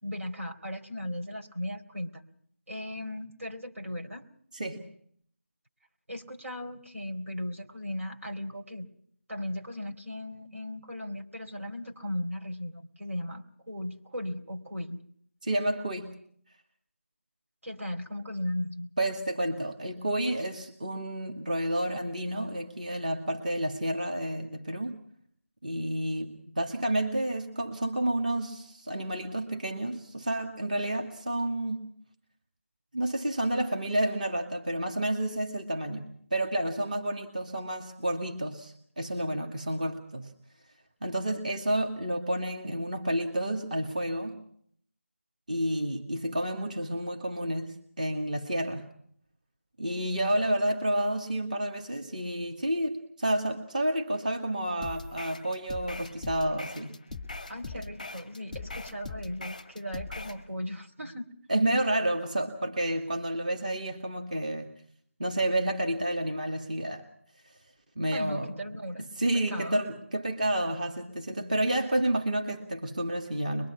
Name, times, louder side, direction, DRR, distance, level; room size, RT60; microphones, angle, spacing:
voice 1, 0.0-2.2 2.7-4.3 6.1-8.9 9.3-15.0 17.6-18.9 57.5-61.3 68.1-69.1 69.3-69.9, left 1 dB, 75° right, 2 dB, 4.0 m, -37 dB
voice 2, 4.5-4.9 15.4-16.1 19.0-25.0 25.6-31.9 32.9-40.3 41.0-44.4 45.5-48.9 49.8-57.0 61.5-64.7 65.2-67.1 68.0-68.5 69.0-73.7, right 1 dB, 35° right, 2 dB, 2.3 m, -30 dB
sound 1, 54.8-60.4, left 3 dB, ahead, 1.2 m, -41 dB
23.5 x 23.0 x 5.9 m, 0.63 s
figure-of-eight pair, 170°, 7 cm